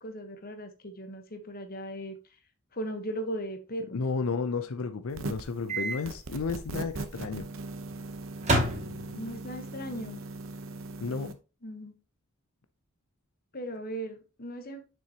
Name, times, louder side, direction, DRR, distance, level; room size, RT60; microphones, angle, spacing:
voice 1, 0.0-2.2 2.7-4.0 9.1-10.2 11.6-11.9 13.5-14.8, right 1 dB, 45° left, 1.2 m, -37 dB
voice 2, 3.9-7.5 11.0-11.4, left 4 dB, 90° left, 0.6 m, -32 dB
sound 1, 5.1-5.6 6.0-11.3, right 2 dB, 70° right, 0.9 m, -39 dB
Microwave oven, 5.7-6.0 6.3-6.5 8.4-9.4, right 1 dB, 30° right, 2.3 m, -28 dB
6.8 x 6.3 x 2.9 m
head